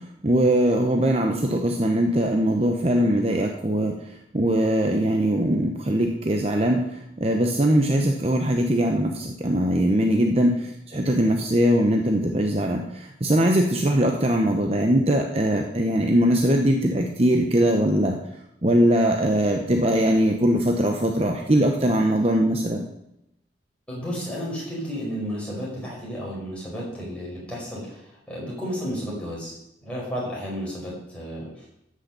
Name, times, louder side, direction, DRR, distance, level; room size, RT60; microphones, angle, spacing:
voice 1, 0.2-4.0 4.3-6.8 7.2-10.6 10.9-18.2 18.6-22.8, right 1 dB, 35° right, 3 dB, 0.9 m, -21 dB
voice 2, 23.9-28.0 28.3-29.5 29.8-31.7, equal, 5° left, -5 dB, 5.0 m, -32 dB
13.5 x 6.5 x 6.7 m, 0.82 s
head